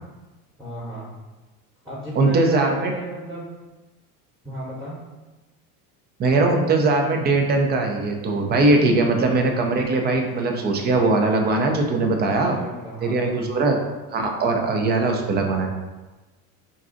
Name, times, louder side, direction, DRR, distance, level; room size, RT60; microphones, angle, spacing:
voice 1, 0.6-1.1 1.8-3.5 4.4-5.0 12.3-13.4, right 1 dB, ahead, -8 dB, 0.9 m, -34 dB
voice 2, 2.2-2.9 6.2-12.6 13.0-13.8 14.1-15.7, right 3 dB, 25° right, 3 dB, 0.4 m, -20 dB
2.5 x 2.3 x 3.7 m, 1.2 s
supercardioid pair, 95°, 45 cm